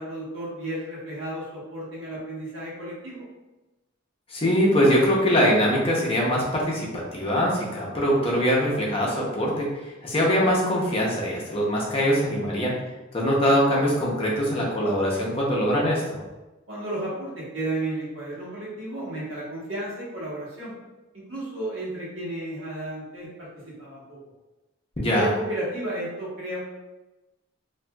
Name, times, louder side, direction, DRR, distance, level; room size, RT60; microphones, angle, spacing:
voice 1, 0.0-3.2 16.7-20.7 21.1-24.2 25.0-26.6, right 1 dB, 85° right, -7 dB, 1.1 m, -33 dB
voice 2, 4.3-12.7 13.1-16.2 25.0-25.3, equal, 30° left, -4 dB, 0.6 m, -23 dB
2.7 x 2.5 x 2.2 m, 1.1 s
head